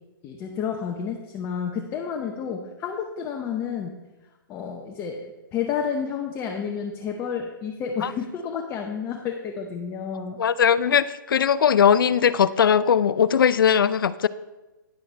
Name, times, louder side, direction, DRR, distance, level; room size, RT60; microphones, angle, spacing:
voice 1, 0.2-3.9 4.5-10.4, left 7 dB, 20° left, 2 dB, 0.8 m, -30 dB
voice 2, 10.4-14.3, left 8 dB, 75° left, 16 dB, 0.5 m, -19 dB
10.0 x 9.1 x 3.3 m, 1.1 s
hypercardioid pair, 145°, 11 cm